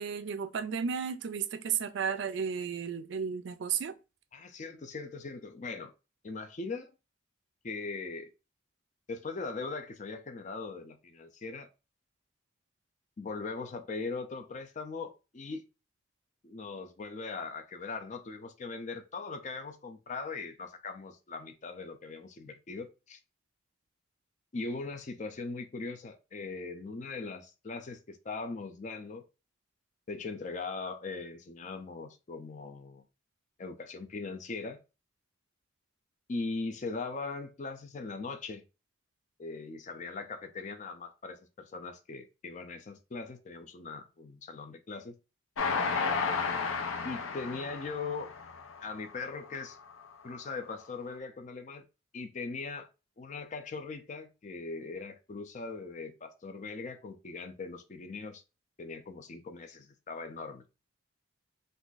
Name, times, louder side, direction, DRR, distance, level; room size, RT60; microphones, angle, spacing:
voice 1, 0.0-3.9, right 7 dB, 65° right, 0.4 m, -33 dB
voice 2, 4.3-5.9 6.2-6.9 7.6-8.3 9.1-11.7 13.2-15.7 16.4-23.2 24.5-29.2 30.1-33.0 33.6-34.8 36.3-38.6 39.4-45.1 47.0-48.3 48.8-49.8 50.2-51.8 52.1-52.9 53.2-58.4 58.8-60.6, left 3 dB, 40° left, 0.4 m, -40 dB
Train, 45.6-49.0 49.5-49.6 49.9-50.0, left 5 dB, 90° left, 0.5 m, -32 dB
2.5 x 2.5 x 3.8 m
head